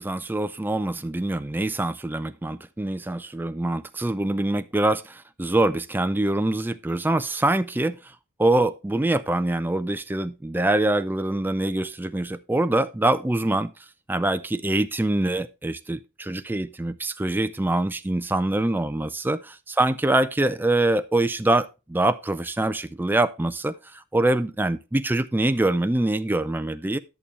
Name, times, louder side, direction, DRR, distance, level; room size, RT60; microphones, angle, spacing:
voice 1, 0.0-8.0 8.4-13.7 14.1-27.0, right 2 dB, 10° right, 0.3 m, -24 dB
11.0 x 6.9 x 3.2 m
head